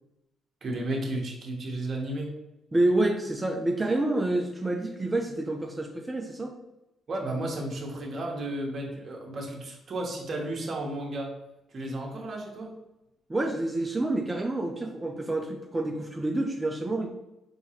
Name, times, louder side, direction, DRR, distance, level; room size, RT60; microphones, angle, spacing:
voice 1, 0.6-2.3 7.1-11.4 11.7-12.7, right 1 dB, 45° right, -1 dB, 1.0 m, -33 dB
voice 2, 2.7-6.5 13.3-17.1, right 2 dB, 20° right, 2 dB, 0.4 m, -28 dB
4.4 x 2.8 x 2.8 m, 0.93 s
cardioid pair, 90°, 0 cm